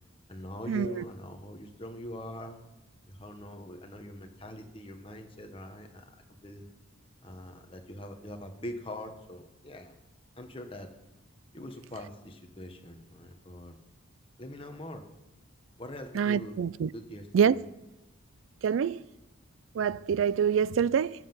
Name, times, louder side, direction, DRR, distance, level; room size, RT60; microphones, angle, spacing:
voice 1, 0.3-2.6 3.1-6.1 6.4-6.6 7.2-10.0 10.4-10.9 11.5-13.8 14.4-15.0 15.8-16.6 16.9-17.6, equal, 25° left, 1.3 m, -43 dB
voice 2, 16.2-16.9 17.3-17.5 18.6-19.0 19.8-21.1, right 7 dB, 80° right, 0.3 m, -25 dB
14.0 x 7.7 x 7.2 m
head